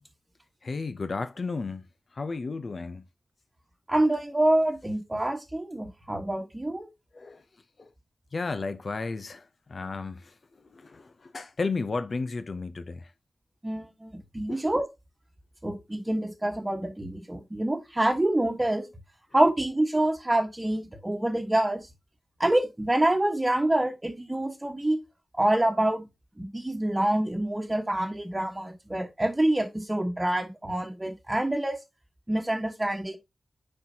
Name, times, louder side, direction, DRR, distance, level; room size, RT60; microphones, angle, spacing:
voice 1, 0.6-1.8 2.1-3.0 7.1-7.4 7.8-7.9 8.3-10.3 10.7-13.1 14.5-14.6, left 4 dB, 50° left, 0.6 m, -33 dB
voice 2, 3.9-6.9 13.6-14.8 15.6-18.9 19.3-21.8 22.4-25.0 25.3-26.0 26.4-31.8 32.3-33.2, right 1 dB, 15° right, 1.3 m, -26 dB
9.8 x 4.4 x 2.8 m
wide cardioid pair, 110°, 0 cm